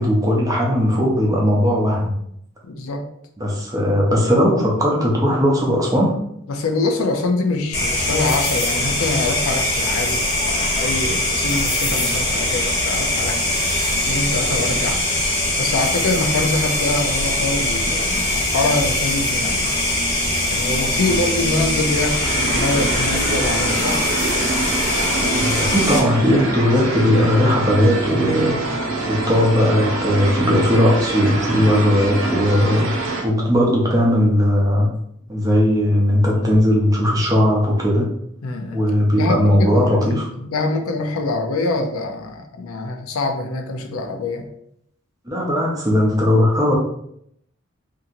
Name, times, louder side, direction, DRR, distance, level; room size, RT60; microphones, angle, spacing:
voice 1, 0.0-2.2 3.4-6.2 25.3-34.9 35.3-38.1 38.7-40.3 45.3-46.7, equal, 15° right, -2 dB, 0.5 m, -18 dB
voice 2, 2.6-3.1 6.5-13.6 14.1-15.0 15.6-19.7 20.5-24.0 38.4-38.8 39.1-44.5, left 3 dB, 85° left, 5 dB, 0.4 m, -24 dB
sound 1, 7.7-26.0, left 1 dB, 45° left, 1.0 m, -21 dB
sound 2, 21.8-33.2, right 2 dB, 80° right, 0.7 m, -25 dB
2.8 x 2.6 x 2.4 m, 0.72 s
head